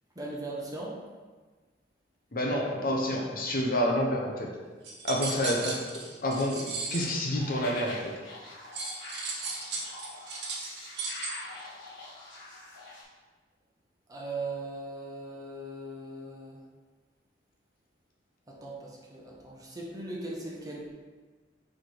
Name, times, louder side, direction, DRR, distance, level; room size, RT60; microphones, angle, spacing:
voice 1, 0.2-1.0 14.1-16.6 18.5-20.9, right 2 dB, 20° right, -3 dB, 1.1 m, -39 dB
voice 2, 2.3-4.6 5.0-8.1, equal, 50° left, 1 dB, 0.9 m, -29 dB
sound 1, 4.8-7.1 8.7-11.3, right 3 dB, 65° right, 1.3 m, -35 dB
sound 2, 7.3-13.0, left 2 dB, 90° left, 1.8 m, -44 dB
5.0 x 4.7 x 4.5 m, 1.4 s
head